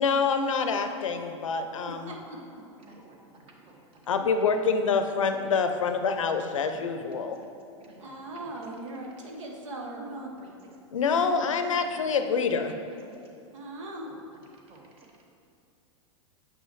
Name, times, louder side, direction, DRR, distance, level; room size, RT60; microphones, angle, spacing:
voice 1, 0.0-2.1 4.1-7.4 10.9-12.7, left 5 dB, 85° left, 7 dB, 0.5 m, -26 dB
voice 2, 1.8-2.8 8.0-10.3 13.5-14.2, right 1 dB, 80° right, 0 dB, 1.1 m, -40 dB
voice 3, 2.8-4.3 4.7-4.8 5.4-6.0 6.7-6.8 7.1-7.5 7.8-8.6 10.4-10.5 11.4-11.6 11.9-12.0 12.9-13.4 14.0-14.1 14.7-15.2, right 2 dB, 35° right, -1 dB, 1.3 m, -54 dB
7.3 x 5.6 x 3.2 m, 2.5 s
hypercardioid pair, 100°, 16 cm